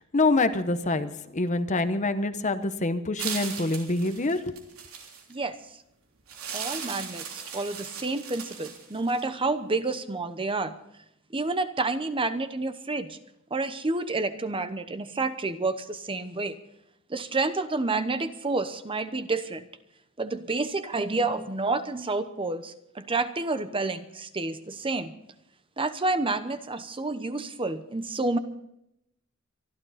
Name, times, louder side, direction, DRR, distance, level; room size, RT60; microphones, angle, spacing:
voice 1, 0.0-4.5, left 2 dB, 35° left, 10 dB, 1.0 m, -26 dB
sound 1, 3.2-5.3 6.3-9.3, right 7 dB, 80° right, 3.3 m, -37 dB
voice 2, 6.5-10.7 11.3-13.2 13.5-16.6 17.1-19.7 20.2-25.1 25.8-28.4, right 3 dB, 25° right, 10 dB, 0.9 m, -29 dB
25.0 x 12.0 x 4.2 m, 0.79 s
head